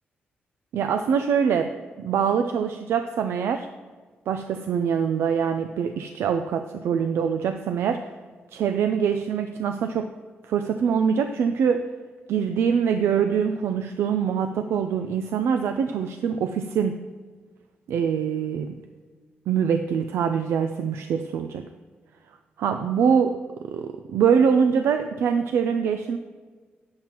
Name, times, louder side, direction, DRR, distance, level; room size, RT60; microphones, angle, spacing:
voice 1, 0.7-3.7 4.3-8.1 8.5-10.1 10.4-11.9 12.3-17.0 17.9-18.8 19.5-21.7 22.6-23.3 23.6-26.2, right 7 dB, 85° right, 7 dB, 0.4 m, -24 dB
9.3 x 7.5 x 4.4 m, 1.5 s
cardioid pair, 65°, 4 cm